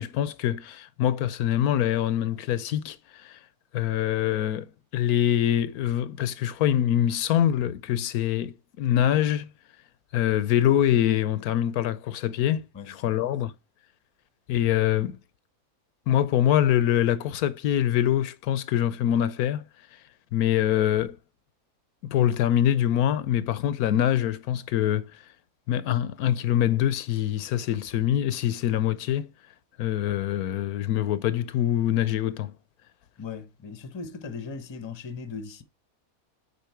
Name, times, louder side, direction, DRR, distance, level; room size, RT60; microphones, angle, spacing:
voice 1, 0.0-3.4 3.7-9.5 10.1-13.5 14.5-15.2 16.1-19.6 20.3-21.2 22.0-25.1 25.7-29.3 29.8-32.5, left 11 dB, 85° left, 1.1 m, -24 dB
voice 2, 12.7-13.2 33.2-35.6, left 5 dB, 30° left, 0.6 m, -38 dB
8.3 x 4.3 x 4.4 m
omnidirectional pair, 1.5 m